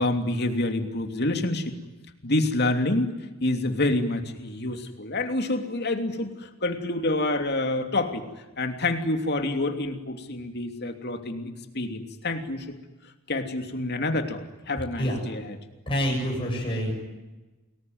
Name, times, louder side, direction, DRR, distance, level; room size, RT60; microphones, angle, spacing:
voice 1, 0.0-1.8 2.2-3.1 3.4-8.2 8.6-12.7 13.3-15.6, left 2 dB, 50° left, 6 dB, 3.0 m, -27 dB
voice 2, 15.9-16.9, equal, 25° left, -2 dB, 7.3 m, -27 dB
30.0 x 21.0 x 9.6 m, 1.1 s
head